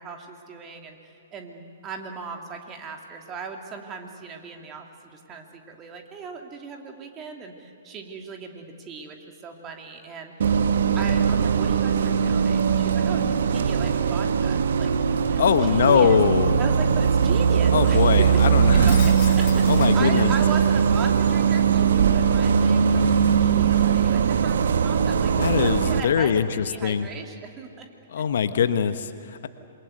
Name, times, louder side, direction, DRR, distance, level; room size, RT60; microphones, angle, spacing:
voice 1, 0.0-9.2 9.4-10.5 10.9-14.9 15.3-16.2 16.6-18.4 18.7-27.9 28.2-28.3, right 5 dB, 25° right, 3 dB, 2.8 m, -37 dB
Bus, 10.4-26.0, right 7 dB, 60° right, 1.2 m, -20 dB
voice 2, 15.4-16.6 17.7-20.3 25.4-27.1 28.1-29.5, left 7 dB, 60° left, 11 dB, 1.1 m, -22 dB
Shatter, 17.8-20.7 21.1-24.3, left 8 dB, 40° left, 3.1 m, -43 dB
28.0 x 22.5 x 8.1 m, 2.5 s
figure-of-eight pair, 115°, 0 cm